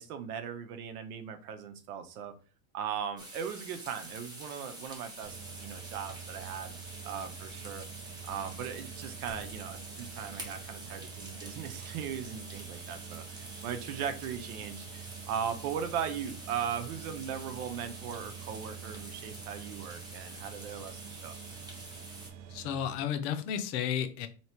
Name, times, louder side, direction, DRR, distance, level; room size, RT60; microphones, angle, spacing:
voice 1, 0.0-2.3 2.7-6.8 7.0-7.9 8.3-21.4, right 8 dB, 85° right, 8 dB, 1.0 m, -38 dB
sound 1, 3.2-22.3, right 1 dB, 10° right, 0.9 m, -47 dB
sound 2, 5.2-22.9, right 9 dB, 45° right, 0.5 m, -47 dB
voice 2, 22.5-24.3, left 9 dB, 50° left, 9 dB, 0.6 m, -32 dB
3.1 x 3.0 x 4.4 m, 0.37 s
supercardioid pair, 160°, 43 cm